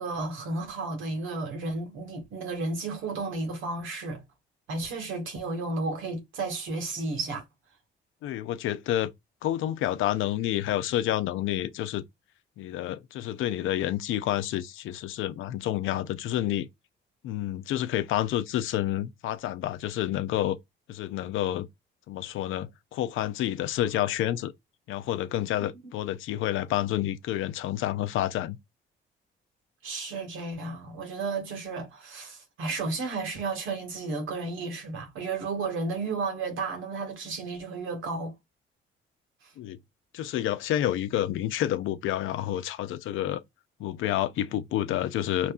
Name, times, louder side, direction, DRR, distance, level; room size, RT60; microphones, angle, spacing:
voice 1, 0.0-4.2 4.7-7.4 29.8-38.3, right 3 dB, 85° right, 1.8 m, -33 dB
voice 2, 8.2-9.1 9.4-12.0 12.6-16.7 17.2-20.6 20.9-21.7 22.1-24.5 24.9-28.6 39.6-39.8 40.1-43.4 43.8-45.5, left 12 dB, 85° left, 0.7 m, -29 dB
5.2 x 3.2 x 2.5 m
cardioid pair, 90°, 20 cm